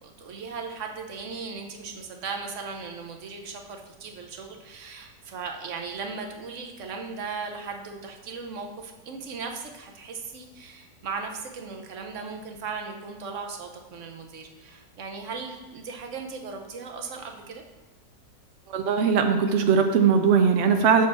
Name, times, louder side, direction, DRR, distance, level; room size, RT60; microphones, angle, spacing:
voice 1, 0.0-17.6, right 5 dB, 55° right, 3 dB, 1.0 m, -37 dB
voice 2, 18.7-21.1, right 6 dB, 80° right, 6 dB, 0.6 m, -20 dB
6.3 x 4.3 x 6.0 m, 1.2 s
omnidirectional pair, 1.9 m